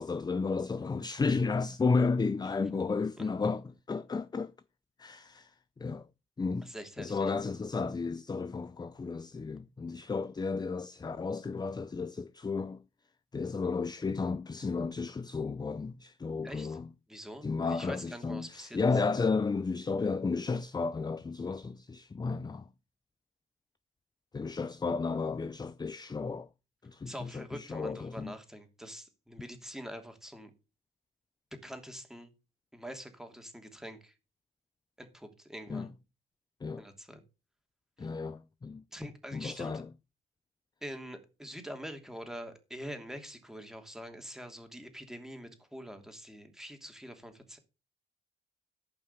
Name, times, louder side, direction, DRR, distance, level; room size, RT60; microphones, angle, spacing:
voice 1, 0.0-4.5 5.0-6.1 6.4-12.8 13.3-16.9 17.4-22.7 24.3-26.5 26.8-28.3 35.7-35.9 36.6-36.8 38.0-38.8 39.3-39.9, left 4 dB, 20° left, 0.6 m, -33 dB
voice 2, 6.6-7.3 16.4-16.8 17.1-18.9 27.1-30.5 31.6-32.3 32.7-34.1 35.0-35.9 36.7-37.2 38.0-38.1 38.9-39.8 40.8-47.6, equal, ahead, 2.9 m, -45 dB
14.5 x 5.7 x 6.9 m
cardioid pair, 90°, 20 cm